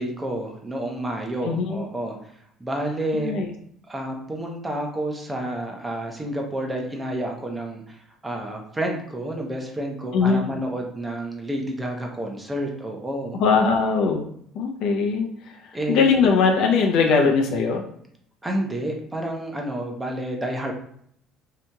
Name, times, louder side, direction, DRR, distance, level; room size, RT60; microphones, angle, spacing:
voice 1, 0.0-2.3 2.6-3.3 3.9-8.0 8.2-13.4 15.7-16.1 17.1-17.3 18.4-20.7, right 1 dB, 10° right, 2 dB, 0.5 m, -29 dB
voice 2, 1.4-1.9 3.1-3.5 10.1-10.6 13.3-14.2 14.5-15.3 15.9-17.8, left 5 dB, 70° left, 2 dB, 0.4 m, -20 dB
2.8 x 2.8 x 2.2 m, 0.67 s
cardioid pair, 135°, 0 cm